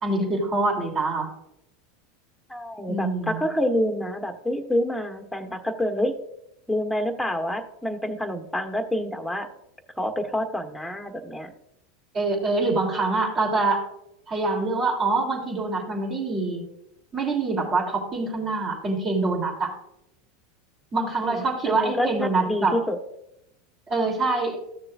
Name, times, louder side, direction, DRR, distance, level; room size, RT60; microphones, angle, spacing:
voice 1, 0.0-1.3 2.9-3.4 12.1-13.8 14.3-16.6 17.1-19.7 20.9-22.7 23.9-24.6, right 3 dB, 35° right, 1 dB, 3.1 m, -25 dB
voice 2, 2.5-6.2 6.7-9.5 10.0-11.5 21.2-23.0, left 1 dB, ahead, 4 dB, 1.2 m, -27 dB
14.5 x 6.6 x 2.5 m, 0.82 s
hypercardioid pair, 90°, 0 cm